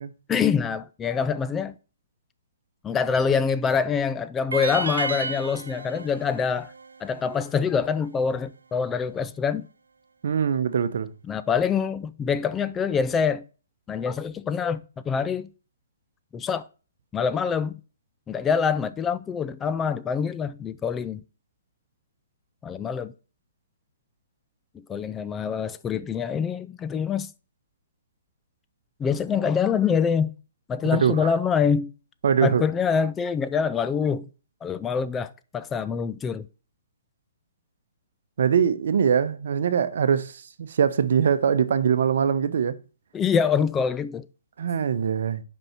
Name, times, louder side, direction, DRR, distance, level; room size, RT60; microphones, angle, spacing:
voice 1, 0.3-1.7 2.8-6.7 7.0-9.7 11.3-13.4 13.9-15.5 16.3-16.6 17.1-17.8 18.3-21.2 22.6-23.1 24.7-27.3 29.0-30.3 30.7-31.9 32.4-34.3 34.6-36.5 43.1-44.3, left 6 dB, 15° left, 0.4 m, -25 dB
sound 1, 4.5-7.7, right 4 dB, 85° right, 0.5 m, -33 dB
voice 2, 10.2-11.1 30.9-31.2 32.2-32.6 38.4-42.7 44.6-45.4, right 7 dB, 65° right, 0.8 m, -22 dB
5.5 x 5.3 x 5.8 m
hypercardioid pair, 135°, 0 cm